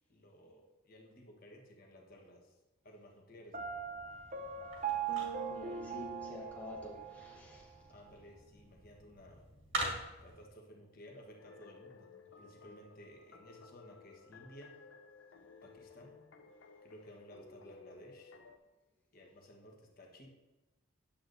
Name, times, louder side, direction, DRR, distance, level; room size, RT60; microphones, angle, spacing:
voice 1, 0.1-2.6 2.8-3.7 7.9-9.4 10.2-14.7 15.6-16.2 16.8-18.3 19.1-20.3, equal, 45° left, 0 dB, 1.2 m, -56 dB
Piano, 3.5-7.4, right 7 dB, 35° right, 0.6 m, -40 dB
sound 1, 3.6-10.4, right 1 dB, 65° right, 1.8 m, -45 dB
voice 2, 5.5-7.7, left 1 dB, 5° left, -3 dB, 1.0 m, -48 dB
sound 2, 11.4-18.6, left 4 dB, 60° left, 0.5 m, -57 dB
10.0 x 7.7 x 2.6 m, 1.1 s
head